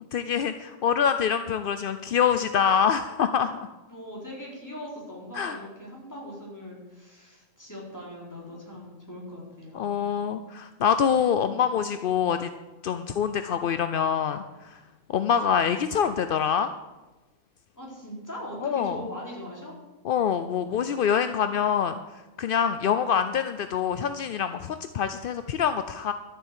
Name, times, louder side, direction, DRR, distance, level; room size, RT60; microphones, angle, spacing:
voice 1, 0.1-3.7 5.3-5.6 9.7-12.5 12.8-14.8 15.1-16.7 18.6-19.0 20.0-26.1, left 7 dB, 60° left, 10 dB, 0.6 m, -25 dB
voice 2, 3.9-10.2 17.8-19.7, equal, 10° left, -4 dB, 4.1 m, -40 dB
13.0 x 7.1 x 8.2 m, 1.1 s
omnidirectional pair, 1.4 m